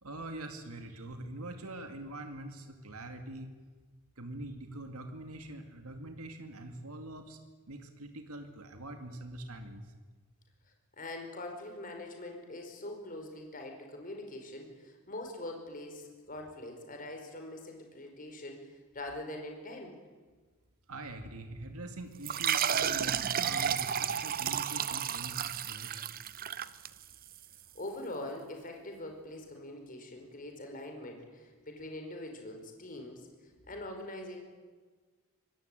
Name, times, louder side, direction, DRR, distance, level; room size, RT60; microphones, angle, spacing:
voice 1, 0.0-3.5 4.2-7.4 7.7-9.8 20.9-26.1, right 1 dB, 90° right, 6 dB, 2.3 m, -44 dB
voice 2, 11.0-20.0 27.7-33.3 33.7-34.4, left 1 dB, 40° left, 3 dB, 4.9 m, -43 dB
sound 1, 22.2-27.4, right 8 dB, 40° right, 0.8 m, -32 dB
25.0 x 19.0 x 9.1 m, 1.4 s
head